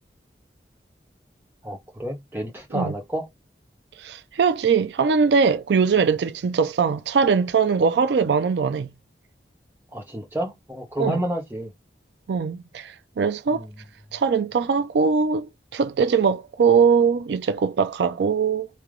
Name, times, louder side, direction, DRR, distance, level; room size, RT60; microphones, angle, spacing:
voice 1, 1.6-3.3 9.9-11.7 13.5-13.7, equal, 10° right, 1.0 m, -30 dB
voice 2, 4.0-8.9 11.0-11.2 12.3-13.7 14.1-18.7, right 5 dB, 80° right, 0.4 m, -21 dB
3.2 x 2.9 x 3.7 m
head